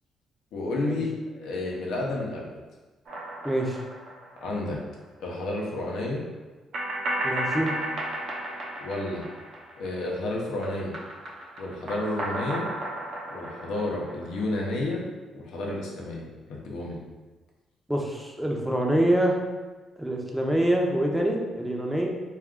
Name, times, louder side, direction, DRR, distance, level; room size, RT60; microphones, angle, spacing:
voice 1, 0.5-1.1 1.4-2.5 4.4-4.8 5.2-6.2 8.8-9.3 9.8-10.9 11.6-12.7 13.3-15.0 15.3-17.0, left 2 dB, 80° left, -2 dB, 0.6 m, -31 dB
sound 1, 3.1-4.7 5.0-5.1 6.7-10.2 10.5-14.7, right 1 dB, 65° right, 0.6 m, -34 dB
voice 2, 3.4-3.8 7.2-7.7 17.9-19.4 20.0-22.1, right 1 dB, 5° right, 0 dB, 0.5 m, -25 dB
2.3 x 2.3 x 3.6 m, 1.2 s
cardioid pair, 90°, 0 cm